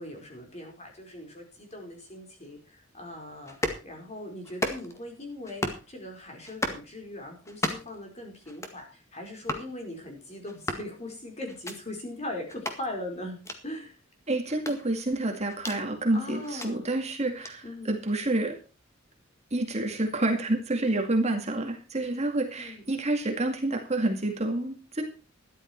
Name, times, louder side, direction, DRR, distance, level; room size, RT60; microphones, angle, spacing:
voice 1, 0.0-13.4 13.6-13.9 16.1-16.9 17.6-18.0 22.6-22.9, left 1 dB, 35° left, 2 dB, 4.8 m, -40 dB
sound 1, 3.5-3.8 4.4-5.0 5.4-5.9 6.4-6.8 7.4-8.0 8.4-8.8 9.4-9.7 10.4-10.9 11.5-11.8 12.5-12.8 13.4-13.6 14.5-15.8 16.4-16.7 17.4-17.5, left 1 dB, 15° left, 1.9 m, -34 dB
voice 2, 14.3-18.6 19.5-25.0, right 2 dB, 35° right, 4 dB, 2.3 m, -28 dB
13.5 x 11.5 x 4.6 m, 0.33 s
head